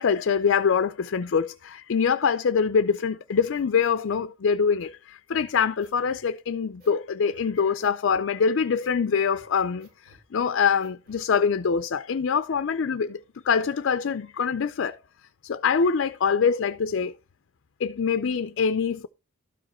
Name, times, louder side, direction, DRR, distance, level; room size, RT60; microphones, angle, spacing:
voice 1, 0.0-15.0 15.4-17.1 17.8-19.1, left 6 dB, 60° left, 0.5 m, -24 dB
sound 1, 3.3-4.2 4.8-4.9 5.3-6.2 6.8-7.0 7.3-8.3 8.8-9.0 9.3-10.2 10.8-11.3, equal, 45° right, 5.9 m, -56 dB
12.5 x 5.0 x 4.3 m
head